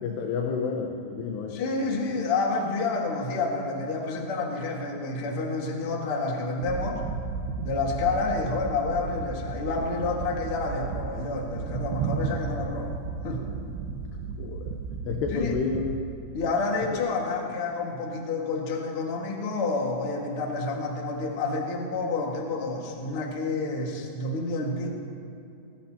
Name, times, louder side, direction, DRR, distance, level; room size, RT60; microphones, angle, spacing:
voice 1, 0.0-1.6 14.4-14.7 15.0-16.0, left 5 dB, 85° left, 1 dB, 3.1 m, -30 dB
voice 2, 1.5-7.0 7.6-12.9 13.2-13.4 15.3-15.5 16.3-24.9, left 3 dB, 45° left, -1 dB, 2.2 m, -29 dB
sound 1, 6.6-16.0, right 5 dB, 80° right, 2.8 m, -34 dB
22.0 x 19.5 x 2.9 m, 2.7 s
omnidirectional pair, 4.7 m